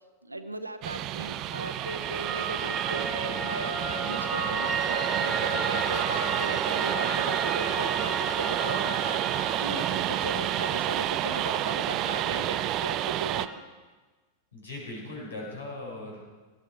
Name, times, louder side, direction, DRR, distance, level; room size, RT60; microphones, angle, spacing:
voice 1, 0.2-3.8 4.0-13.5, right 2 dB, 85° right, 9 dB, 1.0 m, -37 dB
sound 1, 0.8-13.5, right 13 dB, 35° right, 0.5 m, -30 dB
Piano, 1.2-13.6, right 3 dB, 15° right, 1.9 m, -34 dB
voice 2, 14.5-16.2, left 2 dB, 70° left, -1 dB, 4.9 m, -39 dB
18.5 x 12.0 x 4.6 m, 1.3 s
figure-of-eight pair, 90°, 0 cm